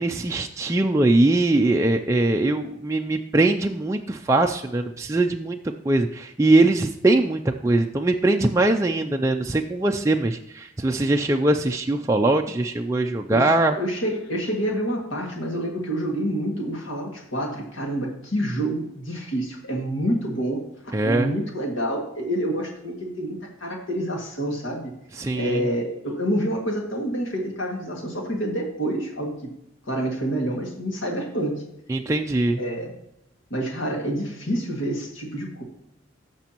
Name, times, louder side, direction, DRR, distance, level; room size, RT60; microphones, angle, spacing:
voice 1, 0.0-5.6 5.8-13.8 20.9-21.3 25.2-25.6 31.9-32.6, right 2 dB, 15° right, 3 dB, 0.3 m, -21 dB
voice 2, 13.3-20.7 21.0-24.9 25.3-29.4 29.8-31.6 32.6-32.9 33.5-35.6, right 1 dB, 70° left, 0 dB, 2.0 m, -27 dB
14.5 x 6.1 x 2.9 m, 0.80 s
head